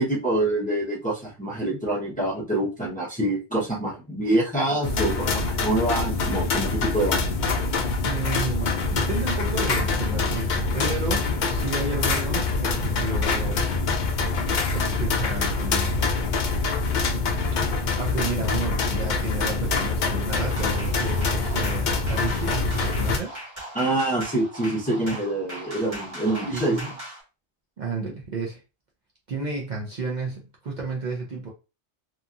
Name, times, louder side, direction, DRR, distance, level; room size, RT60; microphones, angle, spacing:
voice 1, 0.0-7.3 23.7-26.8, right 1 dB, 10° left, 0.6 m, -26 dB
sound 1, 4.8-23.2, left 4 dB, 55° left, 0.5 m, -25 dB
voice 2, 8.0-13.7 14.7-16.2 18.0-23.4 26.5-26.9 27.8-28.6 29.3-31.5, right 3 dB, 50° right, 0.6 m, -32 dB
sound 2, 20.4-27.2, right 1 dB, 30° right, 1.2 m, -39 dB
2.8 x 2.3 x 2.6 m
omnidirectional pair, 1.1 m